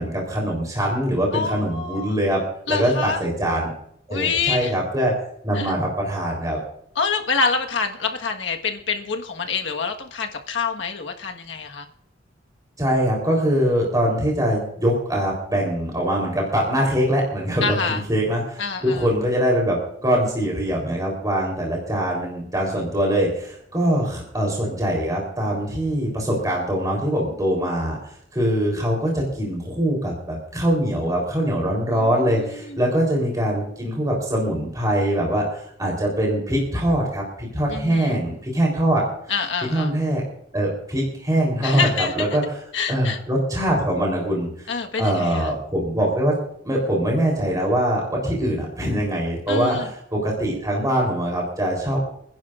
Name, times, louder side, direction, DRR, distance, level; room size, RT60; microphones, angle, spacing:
voice 1, 0.0-2.4 2.7-3.7 4.1-5.1 5.4-6.6 12.8-28.0 28.3-39.0 39.7-40.2 40.5-42.6 42.9-44.7 45.0-46.3 46.6-52.0, equal, 20° right, -1 dB, 3.8 m, -23 dB
voice 2, 1.3-2.1 2.7-3.2 4.1-4.7 5.5-5.7 6.9-11.9 17.6-18.0 18.6-19.1 31.9-32.8 37.7-38.2 39.3-39.9 41.6-42.4 42.7-43.2 44.7-45.5 49.5-49.9, left 5 dB, 70° left, 3 dB, 1.6 m, -26 dB
29.0 x 10.5 x 2.5 m, 0.71 s
head